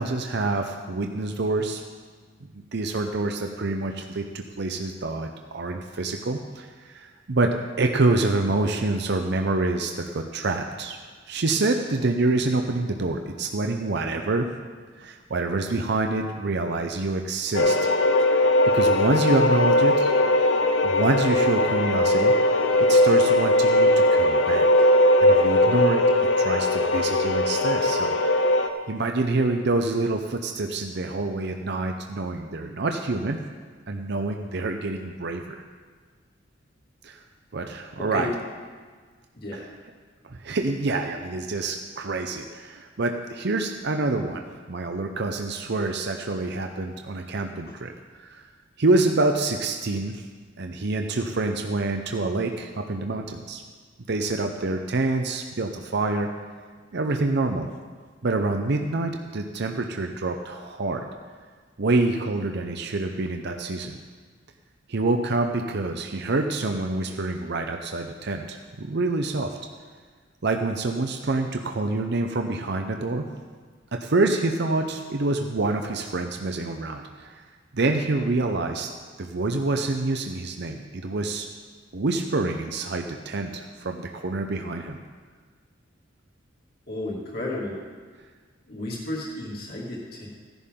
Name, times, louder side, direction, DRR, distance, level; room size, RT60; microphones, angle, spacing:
voice 1, 0.0-1.8 2.5-11.0 11.3-14.5 15.0-17.8 18.7-20.1 20.8-24.7 25.2-26.0 26.4-28.2 28.9-33.4 33.9-35.6 37.0-37.2 37.5-38.3 39.5-39.7 40.2-47.9 48.2-48.4 48.8-50.2 50.6-53.6 54.1-56.3 56.9-57.7 58.2-61.0 61.8-64.0 64.9-69.6 70.4-73.3 73.9-77.4 77.7-78.9 79.2-81.5 81.9-85.0, right 2 dB, 60° right, 4 dB, 0.7 m, -26 dB
sound 1, 17.5-28.7, left 1 dB, 75° left, 0.8 m, -20 dB
voice 2, 39.3-39.7 86.9-87.8 88.7-90.3, left 1 dB, 55° left, -4 dB, 2.4 m, -32 dB
15.5 x 11.0 x 3.7 m, 1.5 s
head